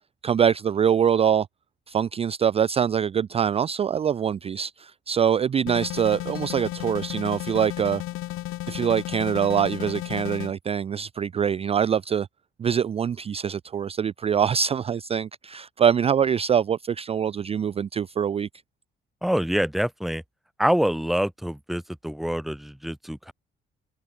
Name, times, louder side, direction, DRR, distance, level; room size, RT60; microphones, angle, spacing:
voice 1, 0.2-1.5 1.9-8.0 8.7-12.3 12.6-18.5, right 8 dB, 30° right, 0.4 m, -24 dB
sound 1, 5.7-10.5, left 17 dB, 90° left, 1.0 m, -33 dB
voice 2, 19.2-20.2 20.6-23.3, equal, ahead, 0.9 m, -26 dB
cardioid pair, 120°, 20 cm